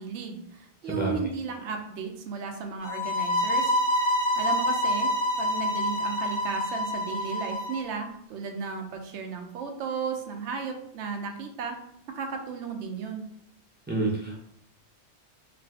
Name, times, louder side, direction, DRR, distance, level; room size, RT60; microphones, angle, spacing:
voice 1, 0.0-5.1 5.4-11.8 12.1-13.3, right 5 dB, 80° right, 4 dB, 0.9 m, -35 dB
sound 1, 2.8-7.8, left 1 dB, 25° left, 0.8 m, -27 dB
voice 2, 13.9-14.4, right 2 dB, 10° right, -4 dB, 0.5 m, -28 dB
2.6 x 2.5 x 3.3 m, 0.71 s
omnidirectional pair, 1.2 m